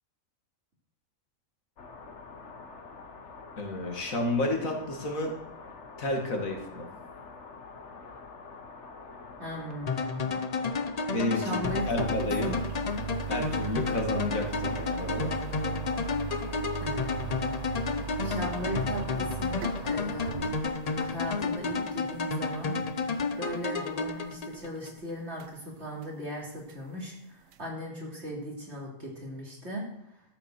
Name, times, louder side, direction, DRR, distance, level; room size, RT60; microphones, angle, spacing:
sound 1, 1.8-20.5, left 4 dB, 60° left, 1.5 m, -46 dB
voice 1, 3.6-5.3 6.0-6.9 11.1-12.5 13.3-15.4, left 1 dB, 80° left, 2 dB, 2.4 m, -31 dB
voice 2, 9.4-10.5 11.3-12.0 12.4-12.6 16.8-17.8 18.2-20.4 21.0-22.8 23.4-29.9, equal, 55° right, -3 dB, 3.5 m, -38 dB
sound 2, 9.9-24.9, left 4 dB, 40° left, 0.6 m, -31 dB
sound 3, 11.6-25.0 25.4-25.5 26.0-26.1 26.7-26.8 27.5-27.6, right 10 dB, 75° right, 1.0 m, -39 dB
13.0 x 7.0 x 6.7 m, 0.78 s
omnidirectional pair, 1.4 m